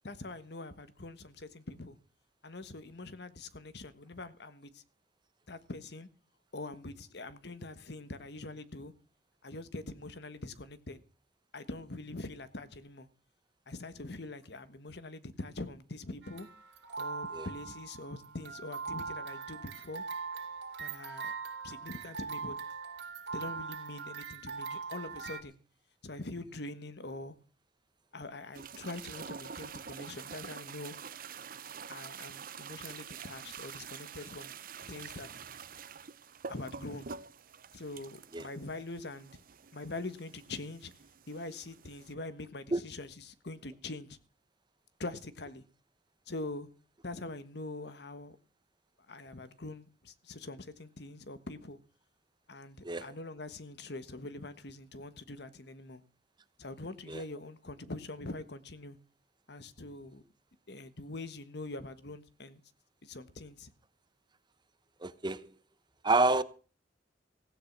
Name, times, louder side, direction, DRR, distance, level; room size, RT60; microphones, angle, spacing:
voice 1, 0.0-2.0 2.4-4.8 5.5-6.1 6.5-8.9 9.4-11.0 11.5-13.1 13.7-16.5 17.0-20.0 20.8-21.3 21.6-22.6 23.3-25.6 26.0-27.3 28.1-31.0 31.9-34.6 34.9-35.3 36.5-37.1 37.7-39.3 39.7-40.9 41.3-44.2 45.0-45.6 46.3-46.7 47.0-48.4 49.1-51.8 52.5-56.0 56.6-59.0 59.5-60.2 60.7-62.6 63.0-63.7, left 2 dB, 65° left, 1.4 m, -43 dB
sound 1, 16.2-25.4, right 5 dB, 70° right, 2.2 m, -41 dB
sound 2, 28.5-42.1, right 6 dB, 55° right, 0.9 m, -47 dB
voice 2, 65.0-65.5 66.0-66.4, right 2 dB, 25° right, 0.9 m, -28 dB
16.5 x 9.8 x 6.1 m
head